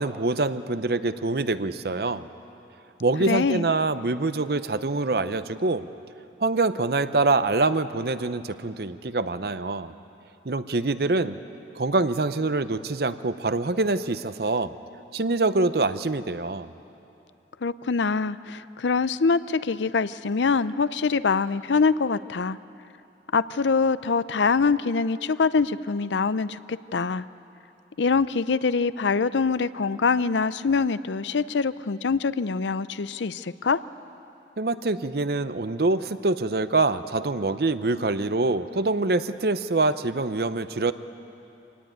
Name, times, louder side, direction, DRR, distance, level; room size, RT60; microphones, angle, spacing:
voice 1, 0.0-2.3 3.0-5.9 6.4-9.9 10.4-11.4 11.7-14.7 15.1-16.7 34.6-40.9, right 3 dB, 55° right, 12 dB, 0.7 m, -25 dB
voice 2, 3.3-3.7 17.6-22.6 23.3-27.3 28.0-33.8, left 4 dB, 80° left, 16 dB, 0.6 m, -24 dB
25.5 x 18.5 x 9.3 m, 2.8 s
head